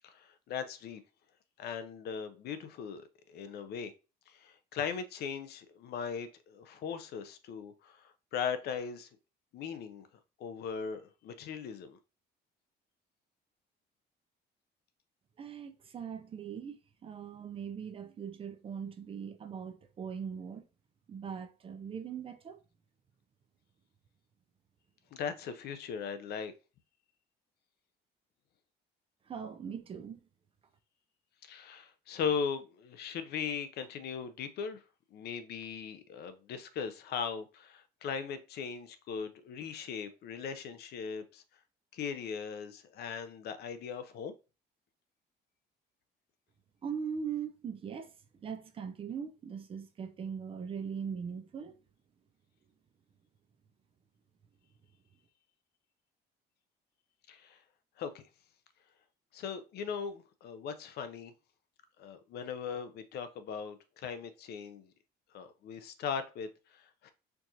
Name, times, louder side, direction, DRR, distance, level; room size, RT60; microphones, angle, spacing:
voice 1, 0.0-1.0 1.6-3.9 4.3-9.1 9.5-10.1 10.4-12.0 25.1-26.5 31.4-34.8 35.1-41.4 41.9-44.3 57.3-57.6 58.0-58.2 59.3-61.3 62.0-64.9 65.3-67.1, left 6 dB, 65° left, 0.5 m, -39 dB
voice 2, 15.4-20.7 21.1-22.6 29.3-30.2 46.8-48.1 48.4-51.8, right 7 dB, 30° right, 0.4 m, -40 dB
4.5 x 2.4 x 2.7 m
cardioid pair, 140°, 18 cm